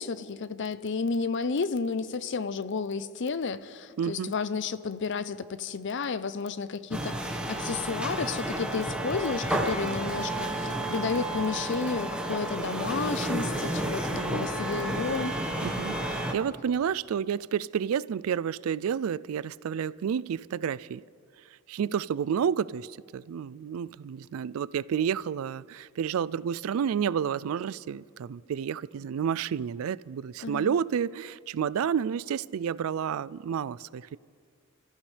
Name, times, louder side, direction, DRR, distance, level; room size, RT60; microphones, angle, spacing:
voice 1, 0.0-15.4 30.4-30.7, left 4 dB, 55° left, 0.6 m, -32 dB
voice 2, 4.0-4.3 14.1-14.5 15.6-21.0 21.7-34.2, right 8 dB, 75° right, 0.3 m, -30 dB
sound 1, 6.9-16.3, right 1 dB, 5° right, 1.3 m, -31 dB
29.0 x 14.5 x 3.3 m
head